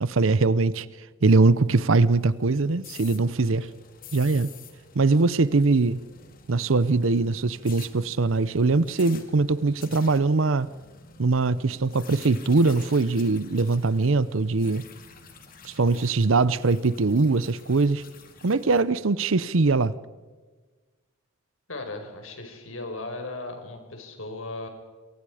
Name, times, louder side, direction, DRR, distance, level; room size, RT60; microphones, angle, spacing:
voice 1, 0.0-0.9 1.2-3.7 4.1-4.5 4.9-6.0 6.5-10.7 11.2-14.8 15.6-18.0 18.4-19.9, right 3 dB, 80° right, 17 dB, 0.7 m, -22 dB
sound 1, 1.4-18.8, left 5 dB, 45° left, 2.6 m, -49 dB
voice 2, 21.7-24.7, left 2 dB, 80° left, 5 dB, 5.1 m, -36 dB
27.5 x 24.0 x 5.0 m, 1.4 s
head